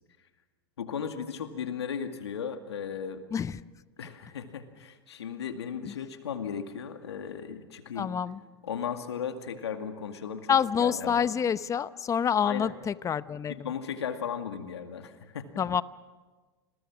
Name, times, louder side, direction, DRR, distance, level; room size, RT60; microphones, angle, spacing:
voice 1, 0.8-3.2 4.0-8.1 8.6-11.3 12.4-12.7 13.5-15.5, left 7 dB, 90° left, 6 dB, 2.3 m, -36 dB
voice 2, 8.0-8.4 10.5-13.7 15.6-15.8, left 8 dB, 25° left, 15 dB, 0.8 m, -27 dB
29.0 x 21.5 x 6.3 m, 1.3 s
hypercardioid pair, 105°, 14 cm